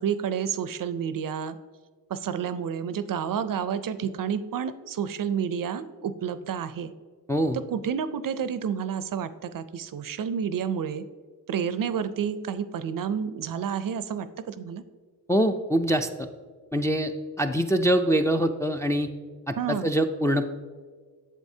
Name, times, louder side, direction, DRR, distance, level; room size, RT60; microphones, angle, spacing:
voice 1, 0.0-1.6 2.1-6.9 7.5-11.0 11.5-14.8 19.6-19.9, right 7 dB, 60° right, 13 dB, 0.5 m, -30 dB
voice 2, 15.3-16.3 16.7-17.1 17.4-19.1 19.5-20.5, equal, 10° left, 5 dB, 0.3 m, -24 dB
8.2 x 7.5 x 2.7 m, 1.5 s
cardioid pair, 85°, 39 cm